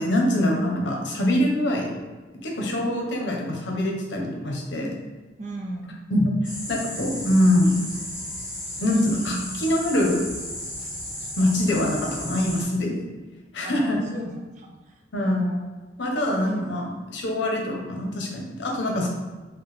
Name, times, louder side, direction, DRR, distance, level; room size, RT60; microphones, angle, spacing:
voice 1, 0.0-1.9 2.4-4.9 6.1-6.3 6.7-7.8 8.8-10.3 11.4-13.0 13.5-14.0 15.1-15.5 16.0-19.1, left 1 dB, 75° left, 0 dB, 0.7 m, -24 dB
voice 2, 5.4-6.0 9.1-9.5 13.6-15.7 16.1-16.7, right 1 dB, 40° right, 1 dB, 0.5 m, -36 dB
sound 1, 6.4-12.6, left 1 dB, 5° right, 1.1 m, -34 dB
4.6 x 2.1 x 3.2 m, 1.3 s
head